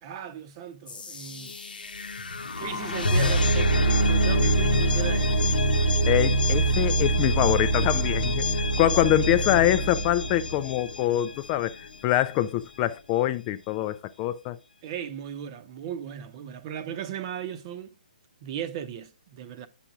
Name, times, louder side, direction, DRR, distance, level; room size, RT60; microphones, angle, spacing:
voice 1, 0.0-1.5 2.6-5.5 8.8-8.9 14.8-18.0 18.4-19.7, right 9 dB, 35° right, 0.8 m, -36 dB
sound 1, 0.9-11.7, right 1 dB, 70° left, 1.0 m, -25 dB
voice 2, 6.1-11.8 12.0-14.6, left 13 dB, 25° left, 0.4 m, -24 dB
9.8 x 5.9 x 2.4 m
figure-of-eight pair, 135°, 5 cm